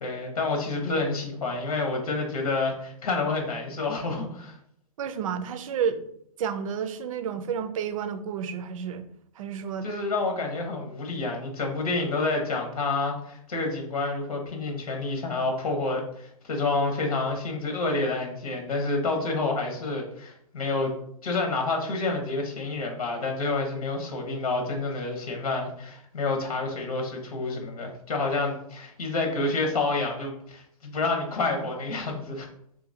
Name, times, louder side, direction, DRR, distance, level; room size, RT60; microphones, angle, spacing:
voice 1, 0.0-4.6 9.8-20.9 21.2-32.5, left 3 dB, 80° left, 2 dB, 1.0 m, -28 dB
voice 2, 5.0-6.0 6.4-9.0 9.4-9.9, right 7 dB, 65° right, 10 dB, 0.5 m, -30 dB
3.8 x 2.8 x 2.7 m, 0.69 s
hypercardioid pair, 125°, 19 cm